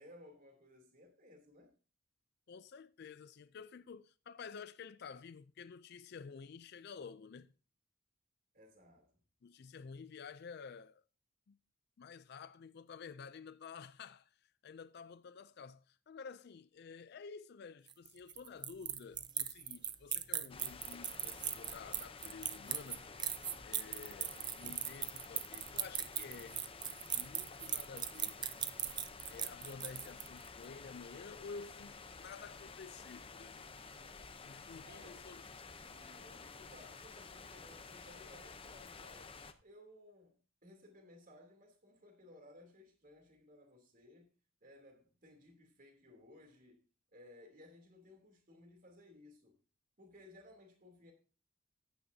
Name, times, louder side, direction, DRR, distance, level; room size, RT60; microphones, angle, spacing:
voice 1, 0.0-1.7 8.5-9.2 34.8-35.2 35.8-39.4 39.6-44.3 44.6-46.8 47.1-49.6 50.0-51.1, left 1 dB, 40° right, 3.0 m, -59 dB
voice 2, 2.5-7.5 9.4-11.0 11.5-11.6 12.0-23.0 23.6-26.6 27.1-28.4 29.3-33.7 34.4-35.4, left 5 dB, 50° left, 0.4 m, -51 dB
sound 1, 17.9-30.5, right 9 dB, 20° right, 0.5 m, -39 dB
sound 2, 20.5-39.5, left 4 dB, 25° left, 0.7 m, -52 dB
14.5 x 9.6 x 2.7 m
head